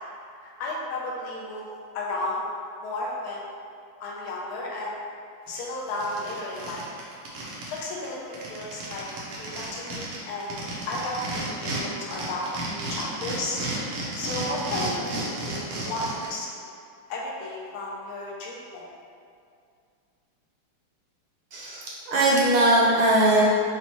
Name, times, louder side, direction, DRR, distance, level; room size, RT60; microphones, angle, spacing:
voice 1, 0.4-1.7 1.9-2.4 2.8-3.4 4.0-5.0 5.5-6.8 7.7-9.1 9.3-10.5 10.9-13.6 14.2-16.6 17.1-18.8, left 2 dB, 80° left, -4 dB, 1.5 m, -33 dB
sound 1, 5.5-5.6 5.9-7.8 8.0-8.1 8.3-11.8 12.1-16.3, right 2 dB, 85° right, 1.6 m, -33 dB
voice 2, 21.5-23.4, right 1 dB, 70° right, -5 dB, 1.3 m, -20 dB
5.7 x 2.0 x 3.0 m, 2.4 s
omnidirectional pair, 2.4 m